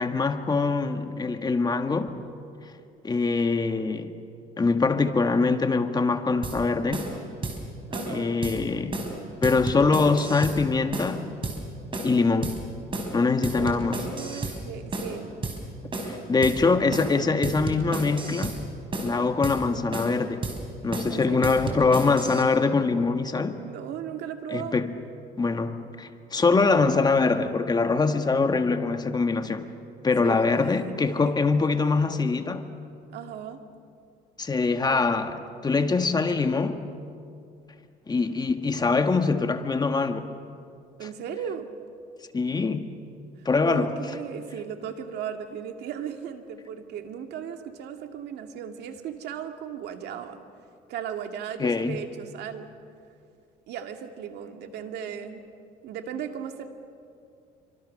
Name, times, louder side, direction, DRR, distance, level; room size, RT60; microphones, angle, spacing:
voice 1, 0.0-2.1 3.0-4.1 4.6-7.1 8.1-9.0 9.4-11.3 12.0-12.6 13.1-14.1 16.0-18.6 19.0-20.5 20.8-23.6 24.5-24.9 25.4-29.7 30.0-32.7 34.4-36.9 38.1-40.3 42.3-42.9 43.4-44.0 51.6-52.1, left 4 dB, 25° left, 1.5 m, -23 dB
sound 1, 6.4-6.6 6.9-7.1 7.4-7.6 7.9-8.1 8.4-8.6 8.9-9.1 9.4-10.6 10.9-11.1 11.4-11.6 11.9-12.2 12.4-12.6 12.9-13.1 13.4-14.6 14.9-15.1 15.4-15.6 15.9-16.2 16.4-16.6 16.9-17.1 17.4-18.6 18.9-19.1 19.4-19.6 19.9-20.2 20.4-20.6 20.9-21.1 21.4-22.4, right 3 dB, 30° right, 4.9 m, -32 dB
voice 2, 7.9-8.4 13.5-15.3 21.1-21.6 23.6-24.8 30.1-30.7 31.2-31.3 33.1-33.6 41.0-41.7 43.7-50.4 50.9-52.7 53.7-55.4 55.8-56.7, right 8 dB, 75° right, 2.1 m, -36 dB
27.5 x 25.0 x 6.5 m
cardioid pair, 110°, 17 cm